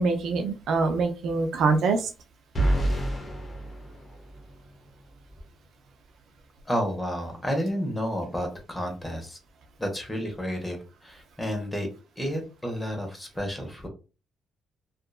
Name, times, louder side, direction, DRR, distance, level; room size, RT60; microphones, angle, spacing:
voice 1, 0.0-2.1, right 4 dB, 75° right, 5 dB, 0.5 m, -24 dB
sound 1, 2.6-4.7, right 1 dB, 35° left, 1.0 m, -28 dB
voice 2, 6.6-9.4 9.8-11.9 12.2-13.9, equal, 10° left, 3 dB, 1.1 m, -31 dB
2.8 x 2.4 x 2.3 m, 0.32 s
cardioid pair, 90°, 0 cm